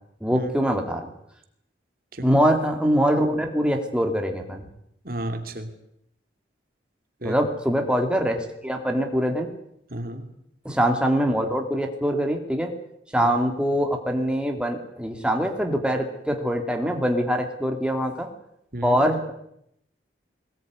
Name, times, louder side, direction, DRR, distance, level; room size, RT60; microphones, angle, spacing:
voice 1, 0.2-1.1 2.2-4.6 7.2-9.5 10.6-12.7 13.1-18.3 18.8-19.3, equal, 5° right, 3 dB, 2.7 m, -23 dB
voice 2, 5.0-5.7 7.2-7.4 9.9-10.3 13.2-13.3 18.7-19.0, right 1 dB, 50° right, 7 dB, 2.7 m, -33 dB
22.0 x 19.0 x 9.6 m, 0.75 s
head